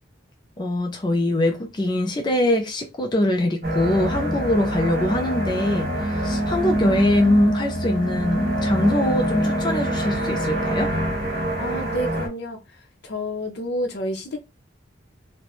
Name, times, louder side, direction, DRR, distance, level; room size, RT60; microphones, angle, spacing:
voice 1, 0.6-10.9, left 1 dB, 25° left, 0.4 m, -23 dB
sound 1, 3.6-12.3, right 1 dB, 55° right, 1.1 m, -25 dB
voice 2, 11.6-12.6 13.0-14.4, equal, 60° left, 0.6 m, -29 dB
3.0 x 2.1 x 2.4 m
head